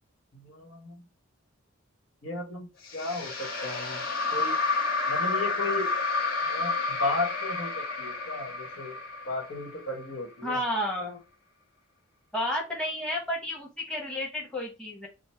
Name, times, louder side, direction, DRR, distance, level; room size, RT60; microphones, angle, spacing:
voice 1, 0.3-1.0 2.2-2.7 2.9-4.0 4.3-4.6 5.1-5.9 6.4-9.0 9.3-10.6, left 3 dB, 70° left, 1 dB, 1.4 m, -34 dB
sound 1, 2.8-10.1, left 3 dB, 45° left, 1.2 m, -30 dB
voice 2, 10.4-11.2 12.3-15.1, left 1 dB, 5° left, -3 dB, 1.0 m, -31 dB
4.0 x 2.1 x 4.3 m, 0.28 s
head